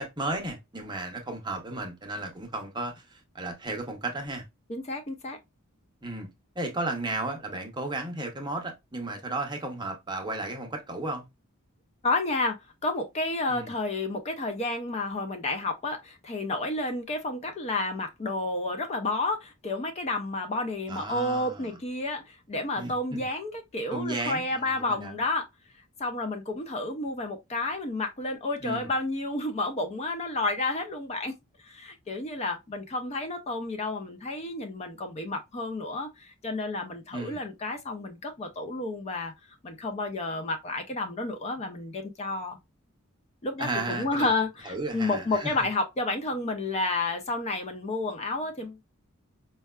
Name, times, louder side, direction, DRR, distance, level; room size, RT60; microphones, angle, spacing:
voice 1, 0.0-4.4 6.0-6.3 6.6-11.2 13.5-13.7 20.9-21.8 22.8-23.3 23.9-25.1 28.6-28.9 37.1-37.4 43.6-44.3 44.7-45.6, right 2 dB, 20° right, 0.7 m, -34 dB
voice 2, 4.7-5.4 12.0-12.6 12.8-25.5 26.0-31.4 31.6-39.3 39.6-42.6 43.4-48.8, left 2 dB, 30° left, 0.4 m, -31 dB
4.4 x 2.2 x 2.2 m
head